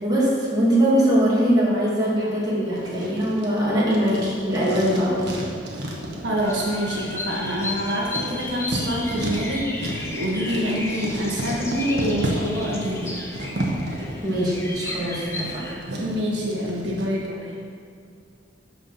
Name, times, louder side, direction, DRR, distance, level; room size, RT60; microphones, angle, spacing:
voice 1, 0.0-5.4 10.6-10.7 14.2-15.6, equal, 20° right, -7 dB, 2.5 m, -22 dB
Writing, 2.7-17.1, right 1 dB, 60° right, 1.5 m, -33 dB
voice 2, 6.2-13.1 16.0-17.5, equal, 80° right, -3 dB, 1.6 m, -26 dB
Bird vocalization bird call bird song, 6.4-15.8, left 2 dB, 15° left, 1.0 m, -34 dB
11.5 x 4.8 x 5.8 m, 2.3 s
head